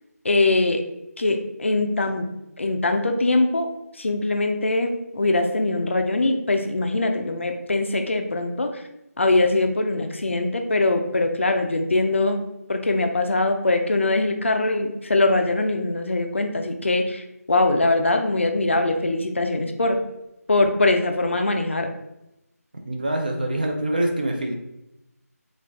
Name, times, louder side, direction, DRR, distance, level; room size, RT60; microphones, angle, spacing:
voice 1, 0.2-0.8 1.2-2.3 2.6-3.7 4.0-8.8 9.2-12.4 12.7-20.0 20.5-21.9, left 2 dB, 50° left, 5 dB, 0.4 m, -22 dB
voice 2, 22.7-24.5, right 1 dB, 30° right, 2 dB, 0.4 m, -25 dB
3.8 x 2.4 x 3.3 m, 0.89 s
figure-of-eight pair, 170°, 9 cm